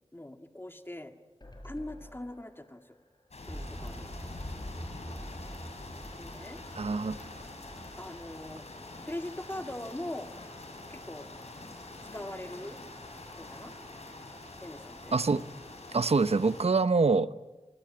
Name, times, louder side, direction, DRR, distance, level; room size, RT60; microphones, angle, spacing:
voice 1, 0.1-1.1 1.6-3.0 3.5-4.1 6.2-6.6 8.0-8.7 9.0-10.3 10.9-11.3 12.1-12.8 13.4-13.7 14.6-15.1, left 1 dB, 20° left, 2.1 m, -41 dB
sound 1, 1.4-4.6 5.0-5.1 5.3-5.4, left 1 dB, 40° left, 7.7 m, -52 dB
sound 2, 3.3-16.6, left 2 dB, 90° left, 6.7 m, -45 dB
sound 3, 3.5-8.5, equal, 10° right, 2.5 m, -45 dB
voice 2, 6.7-7.3 15.1-15.5 15.9-17.3, right 4 dB, 75° right, 0.9 m, -25 dB
28.0 x 24.0 x 8.7 m
wide cardioid pair, 50°, 11 cm